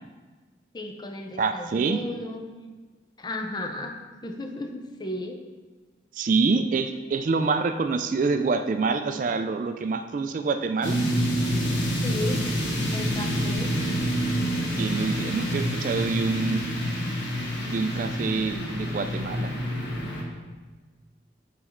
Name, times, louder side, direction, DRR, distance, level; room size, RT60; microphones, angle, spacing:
voice 1, 0.7-2.5 3.2-4.0 4.2-5.4 12.0-12.5 12.9-13.7, left 1 dB, 25° left, 4 dB, 0.5 m, -34 dB
voice 2, 1.4-2.0 6.1-11.0 14.7-16.6 17.6-19.5, right 4 dB, 45° right, 8 dB, 0.3 m, -26 dB
sound 1, 10.8-20.2, equal, 80° left, 1.2 m, -27 dB
7.1 x 4.2 x 4.4 m, 1.4 s
head